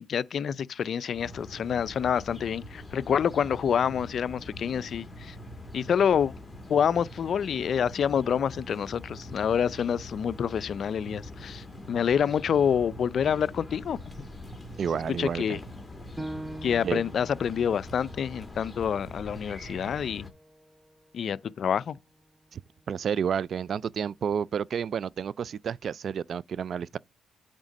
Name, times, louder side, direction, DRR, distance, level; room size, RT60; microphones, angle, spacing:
voice 1, 0.0-5.3 5.7-6.3 6.7-14.0 15.1-15.6 16.6-20.3 21.1-22.0, left 8 dB, 55° left, 0.4 m, -27 dB
sound 1, 1.1-20.3, left 1 dB, 10° left, 2.1 m, -43 dB
voice 2, 14.8-15.6 16.8-17.0 22.5-22.6 22.9-27.0, right 7 dB, 55° right, 0.3 m, -30 dB
Piano, 16.2-21.3 21.8-21.9 22.5-23.0, right 1 dB, 5° right, 0.7 m, -44 dB
8.9 x 3.5 x 5.3 m
cardioid pair, 90°, 0 cm